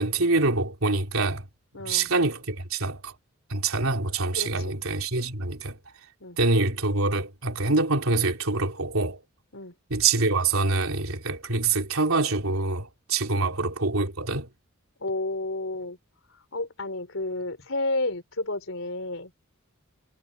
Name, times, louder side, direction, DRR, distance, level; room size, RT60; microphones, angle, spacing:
voice 1, 0.0-1.5 1.8-3.1 3.5-5.8 6.4-9.2 9.9-14.5, right 3 dB, 80° right, 3.4 m, -25 dB
voice 2, 1.7-2.1 4.3-4.7 6.2-6.4 9.5-9.7 13.4-13.5 15.0-16.0 16.5-19.3, left 2 dB, 65° left, 4.0 m, -31 dB
head